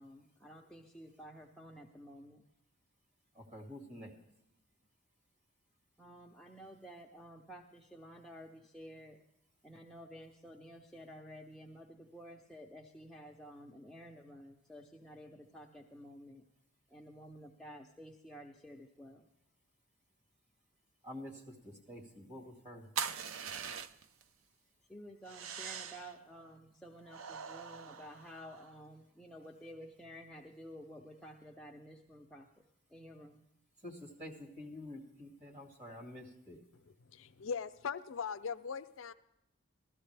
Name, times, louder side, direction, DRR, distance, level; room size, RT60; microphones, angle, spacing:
voice 1, 0.0-2.4 6.0-9.2 9.6-16.4 16.9-19.3 24.9-32.5 32.9-33.4, equal, 5° left, 0.6 m, -52 dB
voice 2, 3.3-4.1 21.0-22.9 33.8-36.6, left 1 dB, 35° right, 2.1 m, -48 dB
sound 1, 23.0-24.2 25.3-26.2 27.1-28.8, right 7 dB, 75° right, 0.5 m, -42 dB
voice 3, 37.1-39.1, left 6 dB, 70° left, 0.5 m, -40 dB
16.0 x 13.0 x 3.3 m
head